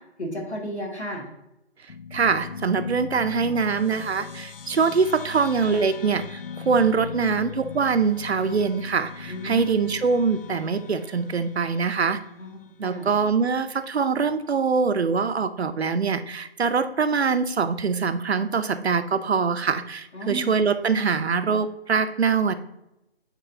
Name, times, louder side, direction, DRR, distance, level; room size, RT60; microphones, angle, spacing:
voice 1, 0.2-1.3 9.3-9.7 12.4-13.1 20.1-20.5, equal, 85° left, 0 dB, 2.1 m, -33 dB
sound 1, 1.9-12.7, left 6 dB, 55° left, 0.5 m, -39 dB
voice 2, 2.1-12.2 12.8-22.5, right 5 dB, 70° right, 10 dB, 0.6 m, -23 dB
8.9 x 4.2 x 2.7 m, 0.89 s
figure-of-eight pair, 160°, 33 cm